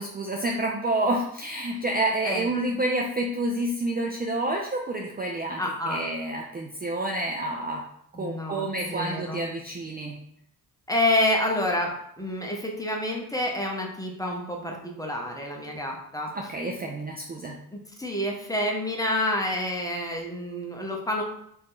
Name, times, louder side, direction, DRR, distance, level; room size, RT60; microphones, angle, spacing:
voice 1, 0.0-5.6 5.9-7.8 8.2-10.2 16.3-17.6, right 1 dB, 25° right, 0 dB, 0.4 m, -29 dB
voice 2, 2.2-2.8 5.6-6.0 8.1-9.4 10.9-16.3 17.7-21.2, left 1 dB, 10° left, 0 dB, 0.8 m, -28 dB
2.8 x 2.6 x 3.7 m, 0.72 s
cardioid pair, 75°, 39 cm